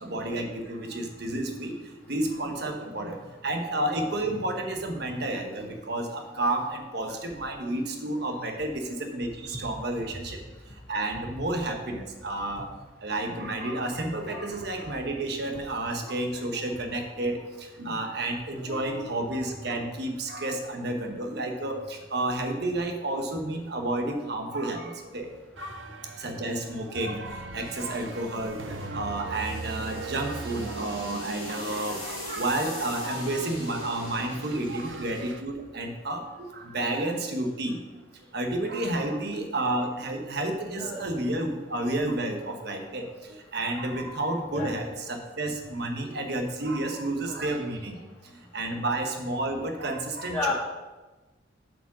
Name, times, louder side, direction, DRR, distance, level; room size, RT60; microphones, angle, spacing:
voice 1, 0.0-1.7 2.1-3.2 3.4-10.4 10.9-12.7 13.0-17.4 17.8-25.3 26.2-37.8 38.3-47.9 48.5-50.5, right 1 dB, 60° right, 4 dB, 1.2 m, -31 dB
voice 2, 1.5-1.8 2.4-2.8 14.1-14.6 16.0-16.4 16.7-17.0 18.5-19.9 25.5-26.3 26.6-27.0 27.5-27.7 28.6-28.9 29.2-29.3 30.9-31.0 32.3-32.4 33.0-33.3 36.7-37.1 40.6-41.3 41.8-42.0 44.5-44.9 45.2-45.4 50.3-50.5, left 3 dB, 10° left, -7 dB, 2.5 m, -38 dB
sound 1, 25.2-35.4, right 3 dB, 80° right, 0.6 m, -40 dB
sound 2, 27.3-35.9, left 2 dB, 25° left, 2.3 m, -44 dB
7.6 x 5.0 x 6.1 m, 1.2 s
head